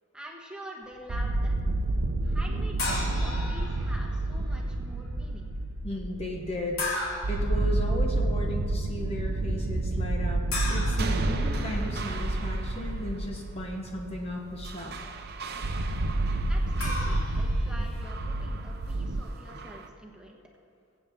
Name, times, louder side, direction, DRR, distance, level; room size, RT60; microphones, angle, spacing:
voice 1, 0.1-1.6 2.2-5.5 16.5-20.4, right 1 dB, 5° right, -2 dB, 1.3 m, -46 dB
sound 1, 1.1-19.2, right 2 dB, 90° right, 0.8 m, -29 dB
sound 2, 2.8-4.1 6.8-7.5 10.5-12.1 16.8-18.0, left 2 dB, 85° left, 2.7 m, -35 dB
voice 2, 5.8-10.4 10.7-15.0, left 1 dB, 30° left, 0 dB, 1.0 m, -36 dB
sound 3, 10.7-19.9, right 3 dB, 50° right, 0.7 m, -40 dB
21.5 x 8.3 x 3.6 m, 2.2 s
head